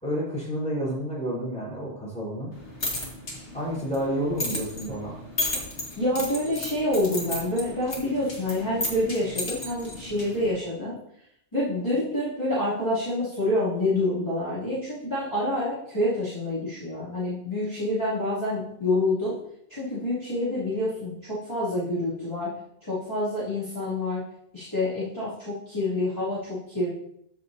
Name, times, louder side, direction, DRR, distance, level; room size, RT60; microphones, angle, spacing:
voice 1, 0.0-2.5 3.5-5.2, equal, 5° left, -6 dB, 4.0 m, -30 dB
sound 1, 2.5-10.6, left 1 dB, 80° left, 2.5 m, -34 dB
voice 2, 6.0-11.0 11.5-19.3 19.7-22.5 22.8-24.2 24.5-26.9, left 1 dB, 25° left, -13 dB, 3.0 m, -27 dB
14.0 x 6.6 x 2.8 m, 0.76 s
omnidirectional pair, 1.1 m